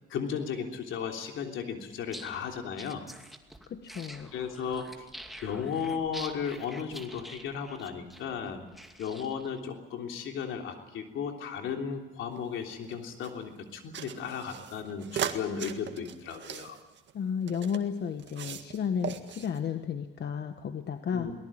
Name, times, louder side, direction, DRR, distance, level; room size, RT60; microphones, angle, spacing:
voice 1, 0.1-3.0 4.3-5.1 5.4-8.7 9.0-16.8 21.1-21.3, left 7 dB, 85° left, 3 dB, 3.3 m, -35 dB
sound 1, 2.0-9.6, equal, ahead, 2.4 m, -47 dB
voice 2, 3.7-4.3 17.1-21.3, left 7 dB, 60° left, 8 dB, 1.4 m, -33 dB
sound 2, 12.3-13.3 13.9-17.8 18.2-18.8 19.0-19.6, right 9 dB, 65° right, 1.9 m, -38 dB
22.5 x 19.0 x 8.9 m, 1.1 s
cardioid pair, 90°, 20 cm